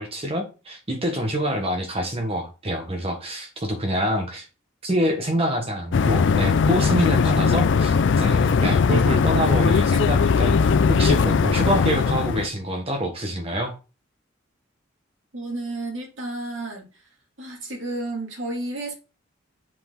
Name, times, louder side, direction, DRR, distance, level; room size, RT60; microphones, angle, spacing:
voice 1, 0.0-4.5 4.8-10.6 10.9-13.7, equal, 30° right, 1.3 m, -26 dB
sound 1, 5.9-12.5, left 5 dB, 65° left, 0.4 m, -19 dB
voice 2, 15.3-17.0 17.4-18.9, right 2 dB, 75° right, 2.5 m, -31 dB
7.5 x 4.4 x 3.8 m
head